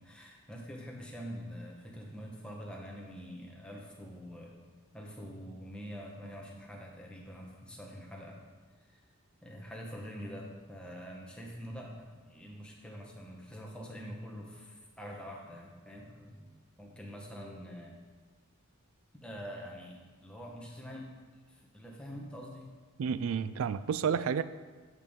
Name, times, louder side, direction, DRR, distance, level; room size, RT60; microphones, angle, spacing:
voice 1, 0.0-4.6 4.9-8.4 8.9-9.0 9.4-16.5 16.8-18.0 19.2-21.1 21.5-22.7, equal, 5° left, -2 dB, 1.1 m, -45 dB
voice 2, 23.0-24.4, right 7 dB, 65° right, 15 dB, 0.3 m, -30 dB
8.3 x 6.9 x 3.6 m, 1.4 s
head